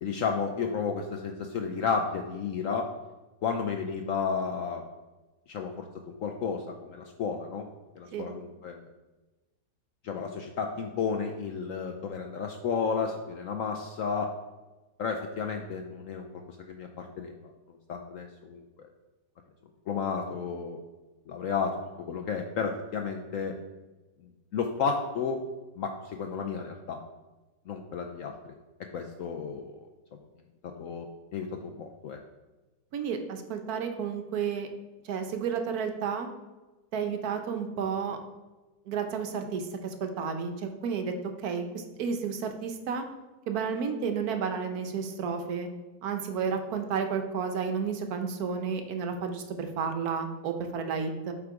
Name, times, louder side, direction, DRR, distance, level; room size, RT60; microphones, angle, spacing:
voice 1, 0.0-2.9 3.4-4.8 5.5-5.8 6.2-7.6 8.0-8.8 10.0-14.3 15.0-16.3 16.7-17.4 17.9-18.9 19.9-20.8 21.3-23.6 24.5-25.4 25.8-27.0 27.7-28.3 28.9-29.8 30.6-32.2, left 5 dB, 70° left, 4 dB, 0.7 m, -32 dB
voice 2, 32.9-34.7 35.0-36.3 36.9-38.2 38.9-41.1 41.4-43.0 43.5-45.7 46.0-51.3, right 6 dB, 65° right, 6 dB, 1.2 m, -31 dB
7.9 x 3.7 x 4.8 m, 1.1 s
omnidirectional pair, 1.9 m